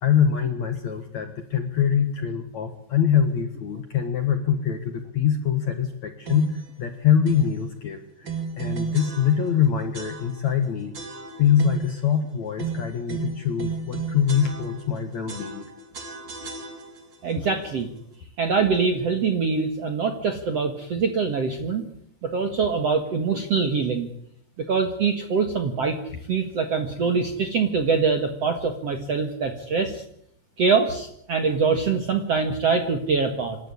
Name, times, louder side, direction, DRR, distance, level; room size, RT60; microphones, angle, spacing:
voice 1, 0.0-10.9 11.4-15.7, left 8 dB, 55° left, 7 dB, 2.1 m, -24 dB
sound 1, 6.2-6.7 7.2-7.6 8.2-9.6 9.9-10.6 10.9-12.0 12.6-15.0 15.3-17.2, right 5 dB, 35° right, 2.4 m, -34 dB
voice 2, 17.2-17.9 18.4-21.8 22.2-24.1 24.6-26.0 26.3-30.0 30.6-33.6, right 5 dB, 55° right, 6 dB, 1.9 m, -24 dB
27.0 x 12.5 x 9.8 m, 0.70 s
omnidirectional pair, 5.2 m